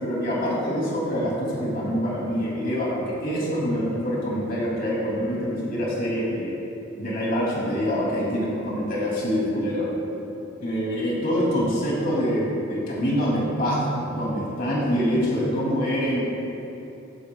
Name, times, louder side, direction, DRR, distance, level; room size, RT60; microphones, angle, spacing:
voice 1, 0.0-6.6 7.0-9.9 10.6-13.8 14.1-16.2, equal, 50° left, -5 dB, 2.7 m, -25 dB
15.0 x 14.0 x 2.3 m, 2.9 s
head